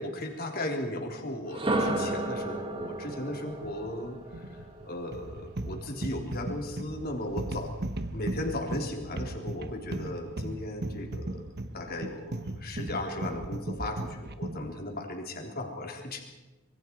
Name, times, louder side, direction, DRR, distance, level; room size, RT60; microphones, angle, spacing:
voice 1, 0.0-7.8 8.1-11.4 11.7-16.2, left 1 dB, 45° left, 2 dB, 3.5 m, -36 dB
sound 1, 1.4-5.4, right 1 dB, 25° right, 2.0 m, -33 dB
sound 2, 2.0-14.7, equal, 90° right, 4.8 m, -50 dB
sound 3, 5.1-14.7, right 1 dB, 45° right, 1.1 m, -36 dB
26.0 x 22.5 x 4.7 m, 1.2 s
head